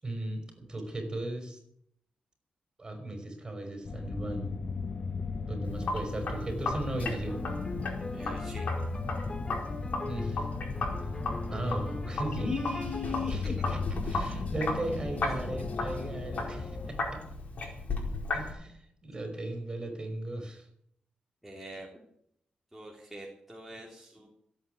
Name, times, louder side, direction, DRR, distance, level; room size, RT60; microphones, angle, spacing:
voice 1, 0.0-1.6 2.8-4.6 5.5-7.5 10.1-10.5 11.5-17.2 18.3-20.7, right 1 dB, 30° right, 4 dB, 5.5 m, -36 dB
sound 1, 3.8-16.9, left 4 dB, 45° left, 1.2 m, -37 dB
Sink (filling or washing), 5.6-18.5, left 3 dB, 65° left, 4.8 m, -36 dB
sound 2, 7.3-13.0, left 2 dB, 30° left, 2.5 m, -42 dB
voice 2, 8.1-8.7 21.4-21.9 22.7-24.3, right 1 dB, 5° right, -3 dB, 3.4 m, -46 dB
16.0 x 8.8 x 8.2 m, 0.72 s
cardioid pair, 75°, 3 cm